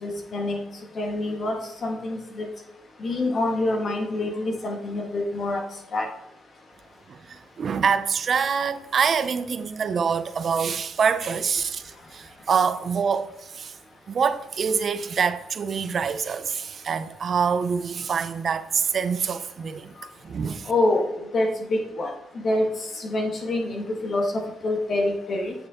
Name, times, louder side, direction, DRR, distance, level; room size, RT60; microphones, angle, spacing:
voice 1, 0.0-0.6 0.9-1.6 1.8-2.5 3.0-5.6 5.9-6.1 20.6-22.1 22.4-25.5, left 2 dB, 45° left, 1.7 m, -26 dB
voice 2, 7.1-13.8 14.1-19.9 20.2-20.7, right 6 dB, 50° right, 0.7 m, -25 dB
8.7 x 6.8 x 3.8 m
cardioid pair, 90°, 0 cm